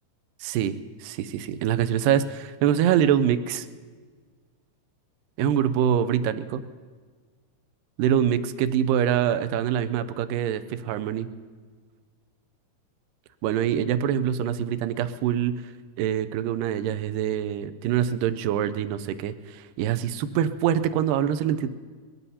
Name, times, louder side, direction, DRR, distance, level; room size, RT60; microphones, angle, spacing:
voice 1, 0.4-3.7 5.4-6.6 8.0-11.3 13.4-15.7 16.0-21.7, right 9 dB, 80° right, 11 dB, 2.0 m, -25 dB
22.5 x 17.5 x 2.8 m, 1.5 s
omnidirectional pair, 4.5 m